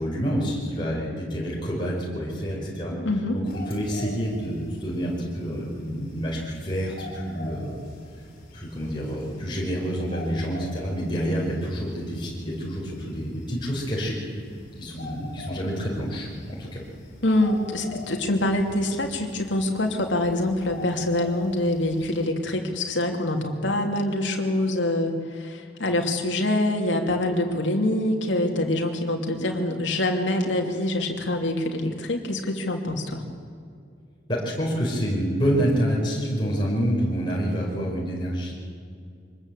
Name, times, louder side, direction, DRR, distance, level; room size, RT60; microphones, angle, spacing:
voice 1, 0.0-2.9 3.3-7.8 8.5-14.2 14.8-16.8 34.3-38.5, equal, 25° left, -4 dB, 5.1 m, -28 dB
voice 2, 2.9-3.4 17.2-33.2, left 1 dB, 85° left, 2 dB, 2.7 m, -25 dB
sound 1, 3.5-22.3, left 1 dB, 45° left, 4.8 m, -44 dB
24.0 x 20.5 x 8.1 m, 2.3 s
head